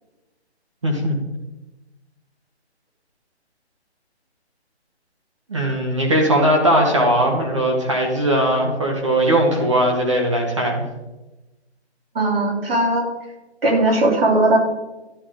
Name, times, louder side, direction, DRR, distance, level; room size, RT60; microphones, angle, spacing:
voice 1, 0.8-1.2 5.5-10.8, right 1 dB, 25° right, 1 dB, 1.1 m, -19 dB
voice 2, 12.1-13.1 13.6-14.6, right 2 dB, 60° right, -1 dB, 3.1 m, -18 dB
11.0 x 8.3 x 3.7 m, 1.0 s
hypercardioid pair, 180°, 34 cm